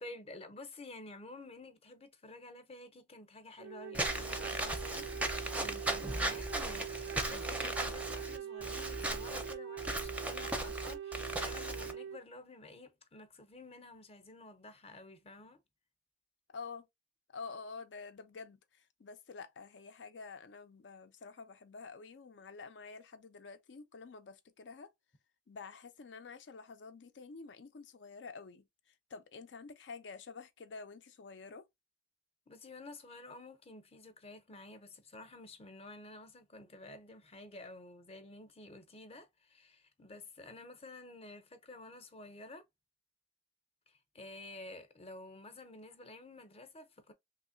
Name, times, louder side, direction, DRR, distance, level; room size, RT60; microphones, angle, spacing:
voice 1, 0.0-15.6 32.5-42.6 43.9-47.1, left 2 dB, 35° left, 0.6 m, -51 dB
Wind instrument woodwind instrument, 3.6-12.2, right 9 dB, 70° right, 0.3 m, -43 dB
Walk footsteps / Squeak, 3.9-11.9, right 1 dB, 10° right, 0.5 m, -37 dB
voice 2, 16.5-16.9 17.3-18.6 19.0-24.9 25.5-28.6 29.1-31.6, left 4 dB, 85° left, 0.5 m, -48 dB
3.1 x 2.8 x 2.6 m
head